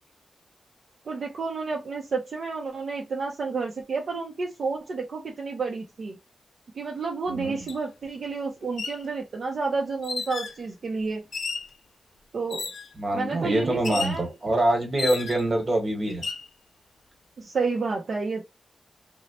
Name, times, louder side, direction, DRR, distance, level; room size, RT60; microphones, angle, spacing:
voice 1, 1.1-6.2 6.8-11.2 12.3-12.7 13.1-14.3 17.4-18.4, right 4 dB, 65° right, 0.5 m, -30 dB
voice 2, 7.3-7.6 13.0-16.2, right 1 dB, 35° right, 1.2 m, -25 dB
sound 1, 7.7-7.8 8.6-9.0 10.0-10.6 11.3-11.7 12.5-12.9 13.8-14.2 15.0-15.5 16.1-16.5, left 4 dB, 70° left, 0.5 m, -33 dB
2.9 x 2.0 x 2.9 m
wide cardioid pair, 110°, 0 cm